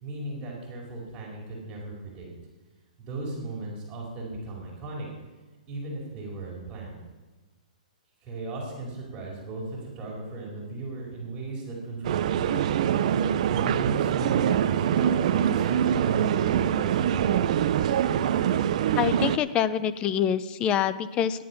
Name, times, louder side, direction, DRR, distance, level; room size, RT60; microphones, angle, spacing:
voice 1, 0.0-2.2 3.0-5.1 5.7-6.9 8.2-12.6 13.5-17.5, right 2 dB, 25° right, -3 dB, 4.7 m, -36 dB
sound 1, 12.0-19.4, right 9 dB, 55° right, 0.6 m, -24 dB
voice 2, 19.0-21.4, left 9 dB, 20° left, 14 dB, 0.6 m, -26 dB
13.5 x 11.0 x 5.8 m, 1.2 s
hypercardioid pair, 145°, 4 cm